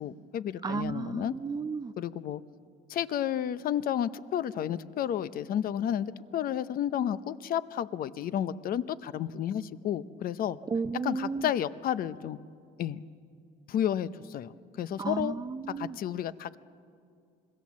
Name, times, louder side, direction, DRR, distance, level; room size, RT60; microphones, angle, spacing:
voice 1, 0.0-1.3 2.0-2.4 2.9-10.6 11.0-12.4 12.8-13.1 13.7-14.5 14.8-15.3 15.8-16.6, left 10 dB, 60° left, 15 dB, 0.8 m, -31 dB
voice 2, 0.6-1.9 10.7-11.5 15.0-16.0, right 4 dB, 25° right, 14 dB, 0.6 m, -33 dB
26.0 x 21.5 x 7.4 m, 2.4 s
cardioid pair, 110°, 17 cm